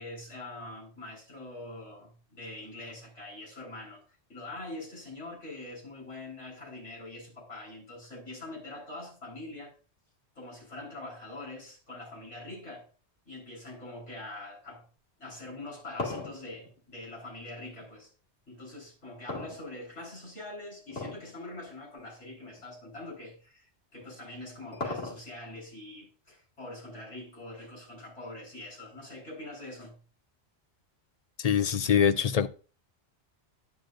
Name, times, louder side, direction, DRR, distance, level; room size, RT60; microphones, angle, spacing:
voice 1, 0.0-4.0 4.3-9.7 10.3-12.9 13.3-14.9 15.2-18.1 18.5-30.0, left 2 dB, 85° left, 4.6 m, -44 dB
sound 1, 15.4-17.9 19.3-20.2 20.9-21.3 21.7-21.8 22.5-22.6 24.0-25.5, left 3 dB, 65° left, 2.6 m, -37 dB
voice 2, 31.4-32.5, left 8 dB, 50° left, 0.5 m, -24 dB
10.5 x 9.8 x 2.6 m
omnidirectional pair, 1.2 m